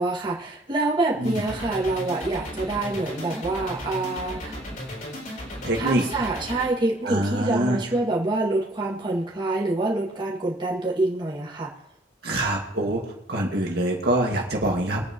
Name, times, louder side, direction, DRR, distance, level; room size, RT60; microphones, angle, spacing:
voice 1, 0.0-4.6 5.8-11.7, right 2 dB, 25° right, -5 dB, 2.3 m, -26 dB
sound 1, 1.2-6.7, equal, 50° left, 4.2 m, -35 dB
voice 2, 5.6-6.0 7.0-7.8 12.2-13.0 13.3-15.0, right 1 dB, 60° right, -1 dB, 2.2 m, -24 dB
23.5 x 9.2 x 3.1 m, 0.81 s
head